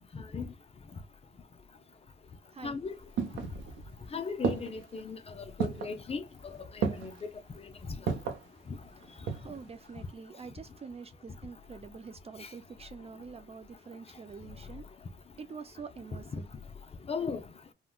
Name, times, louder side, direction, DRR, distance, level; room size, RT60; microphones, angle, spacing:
voice 1, 0.1-0.5 2.6-2.9 4.1-7.1 7.9-8.2 12.4-12.5 16.3-16.4 17.1-17.4, left 5 dB, 30° left, 0.5 m, -37 dB
sound 1, 2.6-4.0 4.4-5.0 5.6-6.0 6.8-7.3 8.1-8.5 9.0-9.6 9.9-10.0, right 6 dB, 80° right, 0.8 m, -33 dB
voice 2, 9.1-14.8 15.4-16.5, right 5 dB, 30° right, 0.4 m, -46 dB
3.5 x 2.2 x 2.2 m
cardioid pair, 90°, 20 cm